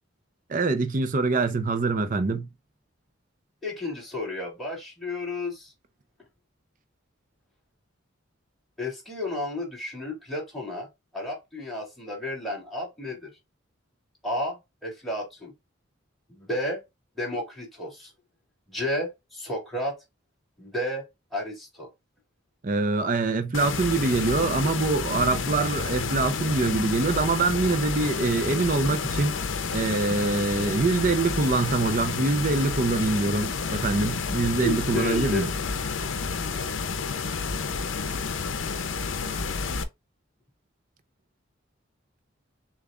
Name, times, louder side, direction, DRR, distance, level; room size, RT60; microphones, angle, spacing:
voice 1, 0.5-2.5 22.6-29.4 29.7-35.5, right 3 dB, 40° right, 0.6 m, -24 dB
voice 2, 3.6-5.7 8.8-10.9 11.1-13.3 14.2-15.5 16.3-16.8 17.2-18.1 18.7-20.0 20.6-21.0 21.3-21.9 34.6-35.6 36.4-36.6, left 1 dB, ahead, 2.4 m, -32 dB
sound 1, 23.5-39.8, left 5 dB, 70° left, 0.7 m, -30 dB
6.8 x 2.4 x 2.4 m
head